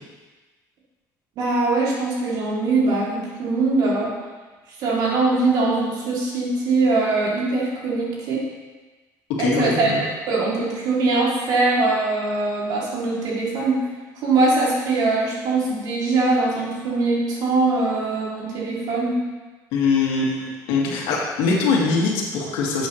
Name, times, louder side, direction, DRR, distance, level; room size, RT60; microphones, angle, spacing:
voice 1, 1.4-4.1 4.8-8.4 9.4-9.9 10.3-13.8 14.2-19.2, right 3 dB, 60° right, -5 dB, 3.1 m, -22 dB
voice 2, 9.4-10.0 19.7-22.9, left 4 dB, 85° left, -2 dB, 2.2 m, -22 dB
11.0 x 8.1 x 3.3 m, 1.3 s
cardioid pair, 135°, 8 cm